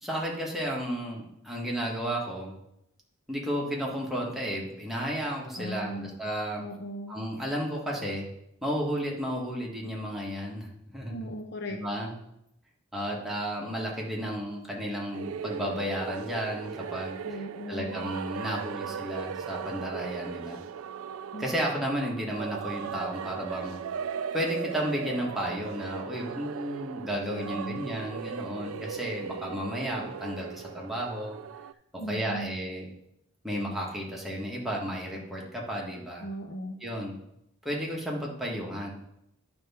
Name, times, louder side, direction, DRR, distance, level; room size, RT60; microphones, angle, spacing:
voice 1, 0.0-2.6 3.3-6.6 7.1-8.3 8.6-11.3 11.7-12.1 12.9-17.4 17.7-20.6 21.4-23.8 24.3-31.4 31.9-32.9 33.4-36.2 36.8-37.1 37.6-38.9, equal, ahead, -3 dB, 1.5 m, -33 dB
voice 2, 5.6-6.1 6.6-7.2 11.1-11.8 17.2-18.1 21.3-21.5 27.3-27.8 32.0-32.5 36.2-36.8, equal, 55° left, 3 dB, 0.8 m, -38 dB
sound 1, 15.1-31.7, right 7 dB, 80° right, 0.3 m, -38 dB
10.5 x 3.5 x 5.6 m, 0.81 s
head